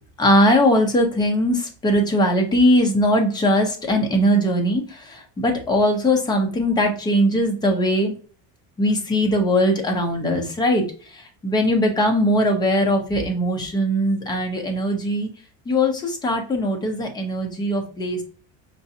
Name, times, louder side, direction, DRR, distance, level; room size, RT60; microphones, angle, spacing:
voice 1, 0.2-8.1 8.8-15.3 15.7-18.2, equal, 10° left, 2 dB, 0.4 m, -20 dB
5.2 x 2.4 x 2.6 m, 0.40 s
cardioid pair, 170°, 42 cm